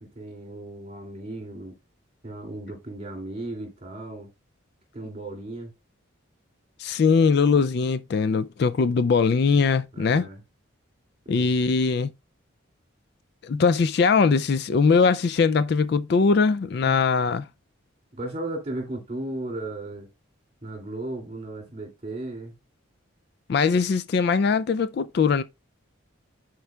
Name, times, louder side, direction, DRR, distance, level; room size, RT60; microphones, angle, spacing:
voice 1, 0.0-1.7 2.2-4.3 4.9-5.7 9.9-10.4 11.2-11.5 16.9-17.0 18.1-20.1 20.6-22.5, right 2 dB, 30° right, 2.6 m, -35 dB
voice 2, 6.8-10.3 11.3-12.1 13.4-17.5 23.5-25.4, left 5 dB, 50° left, 0.3 m, -21 dB
11.0 x 4.5 x 2.3 m
head